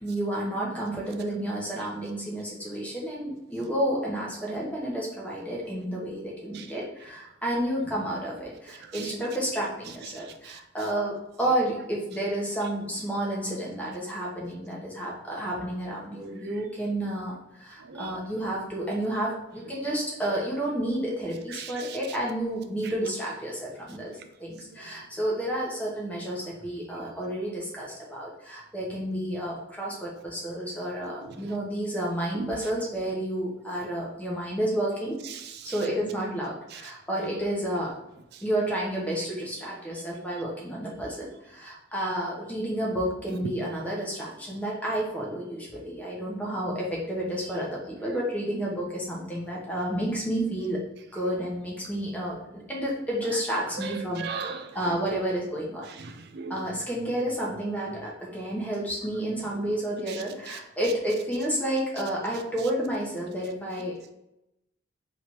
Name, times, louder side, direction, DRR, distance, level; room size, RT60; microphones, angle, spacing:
voice 1, 0.0-24.1 24.4-35.2 35.6-38.0 38.4-50.8 51.1-54.4 54.7-55.9 56.5-64.1, right 1 dB, 5° left, -3 dB, 0.9 m, -31 dB
voice 2, 8.8-9.1 10.1-10.6 17.8-18.2 21.5-22.0 24.7-24.8 27.0-27.1 31.2-31.5 32.3-32.6 35.3-35.8 36.7-36.8 38.3-38.4 53.3-53.4 53.8-55.0 56.0-56.6 59.5-59.7 60.1-60.6, right 5 dB, 50° right, 8 dB, 0.4 m, -39 dB
3.3 x 2.9 x 4.2 m, 0.87 s
head